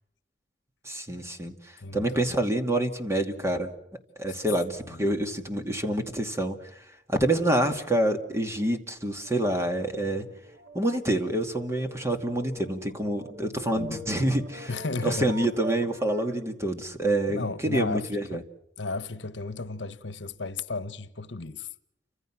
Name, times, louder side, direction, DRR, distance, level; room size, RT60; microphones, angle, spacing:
voice 1, 0.8-3.7 4.2-10.3 10.7-14.7 15.0-18.4, right 1 dB, 15° right, 2.5 m, -27 dB
voice 2, 1.8-2.4 4.9-5.0 13.7-14.0 14.7-15.4 17.3-18.4 18.8-21.7, left 3 dB, 75° left, 1.2 m, -34 dB
sound 1, 9.1-16.4, right 2 dB, 90° right, 2.7 m, -43 dB
29.5 x 26.0 x 6.1 m
head